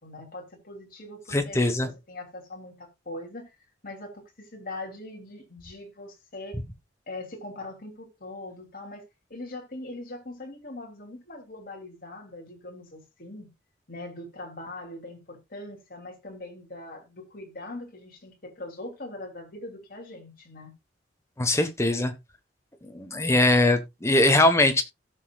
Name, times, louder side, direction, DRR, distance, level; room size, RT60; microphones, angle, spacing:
voice 1, 0.0-3.5 3.8-6.6 7.1-9.0 9.3-13.5 13.9-20.7, left 2 dB, 45° left, 2.9 m, -41 dB
voice 2, 1.3-1.9 21.4-22.1 22.8-24.8, left 2 dB, 15° left, 1.2 m, -21 dB
17.0 x 5.7 x 2.4 m
head